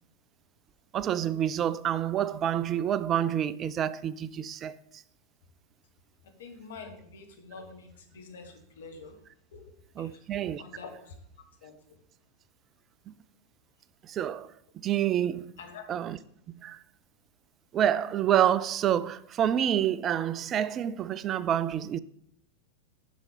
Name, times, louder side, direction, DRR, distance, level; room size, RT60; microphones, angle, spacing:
voice 1, 0.9-5.0 10.0-10.6 13.1-13.2 14.0-15.5 15.9-16.2 16.6-16.8 17.7-22.0, right 10 dB, 30° right, 0.3 m, -28 dB
voice 2, 6.2-9.2 9.5-10.2 10.6-11.1 11.6-11.8 15.6-15.8, left 4 dB, 60° left, 1.6 m, -46 dB
7.6 x 5.9 x 5.1 m
figure-of-eight pair, 90°, 0 cm